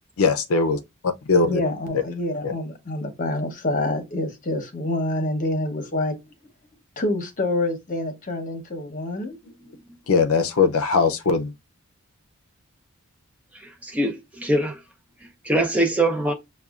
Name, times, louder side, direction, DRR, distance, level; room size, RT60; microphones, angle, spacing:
voice 1, 0.2-1.5 10.1-11.5, left 4 dB, 65° left, 0.5 m, -20 dB
voice 2, 1.5-6.1 7.0-9.4, left 2 dB, 35° left, 0.9 m, -27 dB
voice 3, 13.8-14.8 15.4-16.3, right 1 dB, 5° right, 0.6 m, -22 dB
6.6 x 2.3 x 2.4 m
head